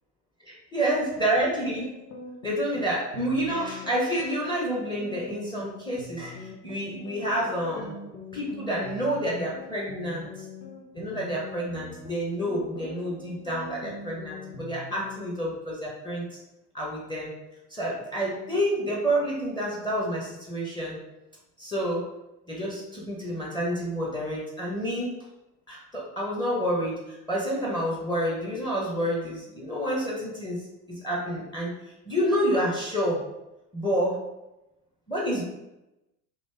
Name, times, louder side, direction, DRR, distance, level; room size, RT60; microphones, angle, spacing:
voice 1, 0.4-1.9 2.4-8.0 8.3-10.5 10.9-16.4 16.7-17.3 17.7-21.0 21.6-22.1 22.5-25.2 25.7-31.7 32.0-33.3 33.7-34.2 35.1-35.4, equal, 10° left, -4 dB, 0.8 m, -29 dB
sound 1, 1.4-15.3, left 2 dB, 90° left, 0.7 m, -42 dB
3.0 x 2.6 x 3.3 m, 0.94 s
figure-of-eight pair, 75°, 50 cm